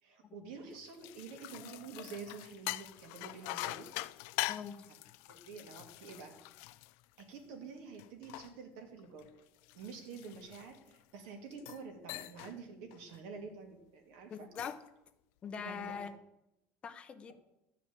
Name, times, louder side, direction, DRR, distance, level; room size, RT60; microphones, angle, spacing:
voice 1, 0.0-3.9 5.3-6.4 7.2-9.3 9.7-14.5 15.6-16.1, right 5 dB, 80° right, 3 dB, 2.4 m, -48 dB
sound 1, 0.7-7.5 8.0-11.0 11.5-11.8 12.1-12.6 12.9-13.2 14.3-14.9, left 19 dB, 70° left, 0.3 m, -43 dB
voice 2, 4.5-4.8 14.3-14.8 15.4-16.1 16.8-17.3, left 6 dB, 25° left, 10 dB, 0.6 m, -42 dB
12.5 x 5.0 x 8.6 m, 0.90 s
cardioid pair, 165°, 4 cm